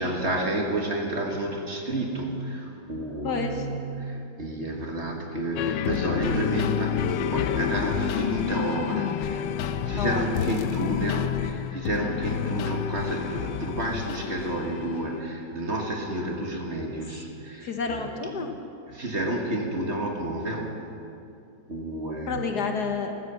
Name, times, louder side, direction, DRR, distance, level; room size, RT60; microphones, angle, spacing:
voice 1, 0.0-18.1 18.9-20.7 21.7-22.5, right 1 dB, 35° right, 1 dB, 1.6 m, -30 dB
voice 2, 3.2-3.6 9.9-10.5 17.6-18.5 22.3-23.1, left 5 dB, 60° left, 5 dB, 1.5 m, -29 dB
sound 1, 5.6-15.2, left 9 dB, 75° left, 1.2 m, -29 dB
15.0 x 13.5 x 6.8 m, 2.6 s
omnidirectional pair, 2.1 m